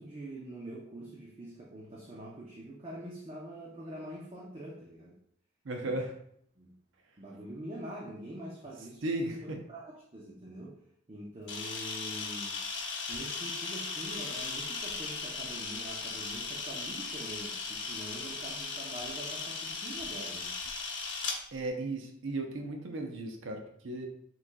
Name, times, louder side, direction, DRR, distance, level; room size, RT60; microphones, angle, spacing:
voice 1, 0.0-5.2 5.8-6.0 6.6-6.8 7.2-10.8 11.1-12.6 13.1-20.5, right 1 dB, 30° right, -4 dB, 0.6 m, -44 dB
voice 2, 5.6-6.1 9.0-9.6 21.5-24.1, right 2 dB, 70° right, 3 dB, 0.6 m, -35 dB
Camera, 11.5-21.4, left 4 dB, 60° left, 0.8 m, -37 dB
5.9 x 3.2 x 2.2 m, 0.68 s
head